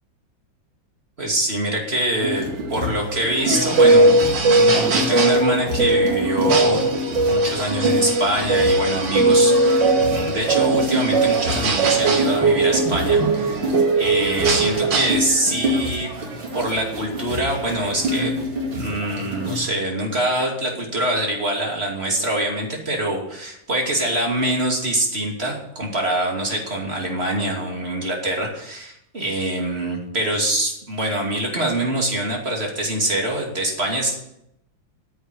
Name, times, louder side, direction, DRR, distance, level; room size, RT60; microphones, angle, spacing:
voice 1, 1.2-6.9 7.2-13.7 14.0-16.1 16.5-18.3 18.7-34.2, right 1 dB, 30° right, 0 dB, 2.9 m, -24 dB
sound 1, 2.2-19.7, equal, 90° right, 3.3 m, -28 dB
sound 2, 3.5-15.1, right 2 dB, 65° right, 2.2 m, -19 dB
10.0 x 8.0 x 9.3 m, 0.81 s
omnidirectional pair, 2.1 m